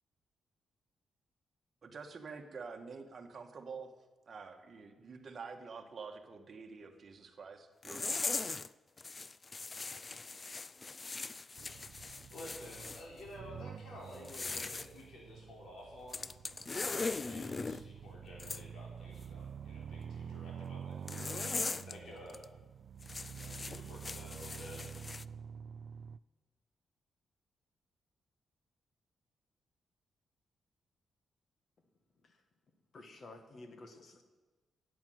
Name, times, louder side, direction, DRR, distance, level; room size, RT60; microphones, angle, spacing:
voice 1, 1.8-3.9 4.3-8.4, right 5 dB, 40° right, 4 dB, 1.5 m, -48 dB
sound 1, 7.8-8.7 9.0-13.0 14.1-14.9 16.1-17.8 18.4-18.6 21.1-21.9 22.3-22.4 23.0-25.2, left 3 dB, 25° left, 0.3 m, -40 dB
sound 2, 11.6-26.2, right 7 dB, 65° right, 0.3 m, -48 dB
voice 2, 12.3-16.3 16.8-22.3 23.4-24.9, left 1 dB, 75° left, -2 dB, 5.0 m, -51 dB
voice 3, 32.9-34.2, left 2 dB, 45° left, 6 dB, 1.6 m, -52 dB
10.5 x 8.9 x 9.4 m, 1.3 s
cardioid pair, 130°, 0 cm